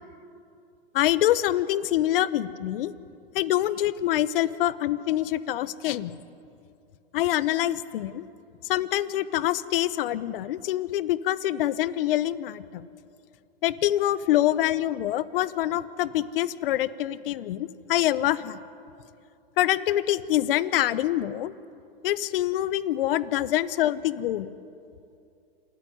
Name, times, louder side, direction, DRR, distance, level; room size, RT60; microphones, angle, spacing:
voice 1, 0.9-2.9 3.3-6.1 7.1-8.3 8.6-12.8 13.6-18.6 19.6-21.5 22.0-24.5, left 13 dB, 65° left, 16 dB, 1.1 m, -25 dB
27.5 x 14.0 x 9.7 m, 2.6 s
hypercardioid pair, 125°, 31 cm